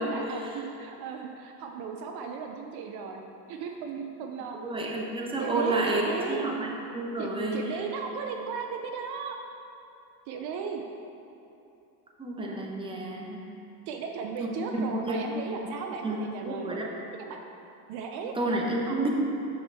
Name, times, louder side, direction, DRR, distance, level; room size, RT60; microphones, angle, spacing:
voice 1, 0.1-4.6 5.4-6.5 7.2-9.4 10.3-10.8 13.9-16.8 17.1-17.4 17.9-18.4 18.6-19.0, right 5 dB, 60° right, 3 dB, 0.7 m, -36 dB
voice 2, 4.5-6.0 6.3-7.6 12.2-13.4 14.4-15.2 16.0-16.2 16.5-16.9 18.4-19.1, right 2 dB, 10° right, -1 dB, 0.9 m, -30 dB
7.2 x 6.2 x 3.5 m, 2.8 s
supercardioid pair, 110°, 43 cm